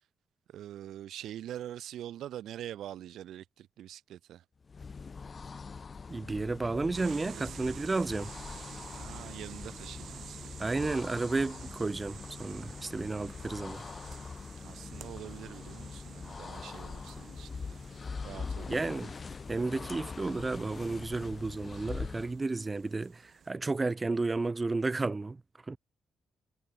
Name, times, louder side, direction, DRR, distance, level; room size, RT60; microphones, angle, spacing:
voice 1, 0.5-4.4 7.3-7.8 8.9-10.4 14.6-17.8 18.2-18.8, right 11 dB, 75° right, 3.8 m, -44 dB
sound 1, 4.6-22.4, left 5 dB, 35° left, 4.0 m, -43 dB
voice 2, 6.1-8.3 10.6-13.8 18.7-19.1 19.5-25.4 25.7-25.8, right 3 dB, 25° right, 0.6 m, -32 dB
sound 2, 6.9-23.5, right 8 dB, 60° right, 3.2 m, -51 dB
cardioid pair, 90°, 0 cm